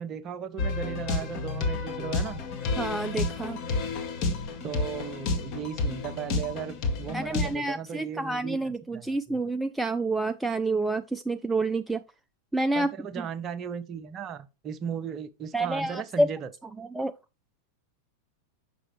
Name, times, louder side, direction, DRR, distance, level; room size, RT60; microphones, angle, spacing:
voice 1, 0.0-2.4 4.6-9.5 12.7-16.5, right 7 dB, 30° right, 0.8 m, -36 dB
sound 1, 0.6-7.5, left 3 dB, 40° left, 1.6 m, -30 dB
voice 2, 2.8-3.6 7.1-12.0 12.5-12.9 13.2-13.3 15.5-16.3 16.8-17.1, right 2 dB, 5° right, 0.4 m, -28 dB
7.6 x 6.1 x 3.2 m
figure-of-eight pair, 90°, 0 cm